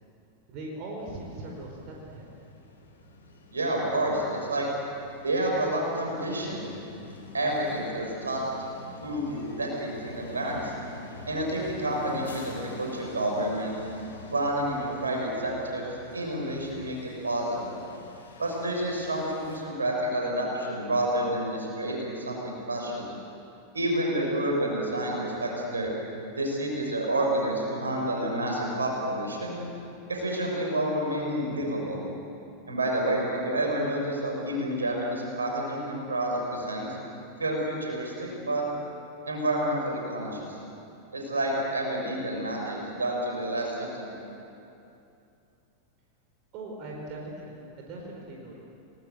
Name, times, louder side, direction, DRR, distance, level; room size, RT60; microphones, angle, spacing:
voice 1, 0.5-2.3 46.5-48.6, right 2 dB, 40° right, -1 dB, 4.8 m, -40 dB
sound 1, 1.0-19.6, left 2 dB, 75° left, 4.1 m, -47 dB
voice 2, 3.5-4.7 5.2-6.7 7.3-8.4 9.0-10.7 11.2-13.8 14.3-15.9 16.1-17.8 18.4-23.0 23.7-25.9 26.3-29.5 30.1-32.0 32.7-36.9 37.4-38.6 39.3-40.6 41.1-44.3, right 1 dB, 75° right, -1 dB, 6.6 m, -29 dB
30.0 x 19.5 x 8.0 m, 2.7 s
figure-of-eight pair, 90°, 0 cm